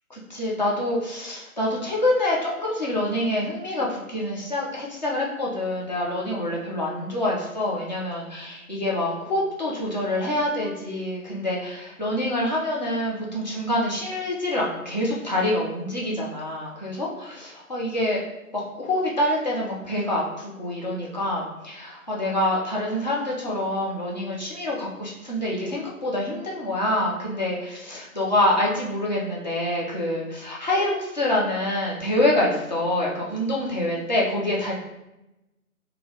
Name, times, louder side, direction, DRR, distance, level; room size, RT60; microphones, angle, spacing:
voice 1, 0.1-18.2 18.5-34.7, left 1 dB, 30° left, -4 dB, 0.7 m, -26 dB
3.3 x 2.9 x 3.9 m, 0.94 s
figure-of-eight pair, 160°, 43 cm